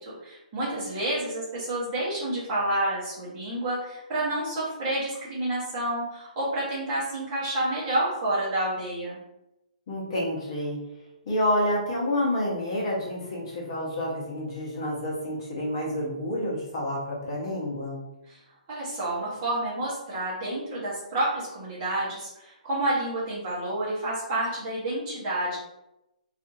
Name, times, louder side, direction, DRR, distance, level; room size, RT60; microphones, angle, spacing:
voice 1, 0.0-9.2 18.3-18.4 18.7-25.6, right 1 dB, 20° right, -8 dB, 1.0 m, -29 dB
voice 2, 9.9-10.8 11.3-18.0, left 1 dB, 35° left, -5 dB, 0.9 m, -29 dB
2.6 x 2.5 x 2.6 m, 0.89 s
hypercardioid pair, 175°, 4 cm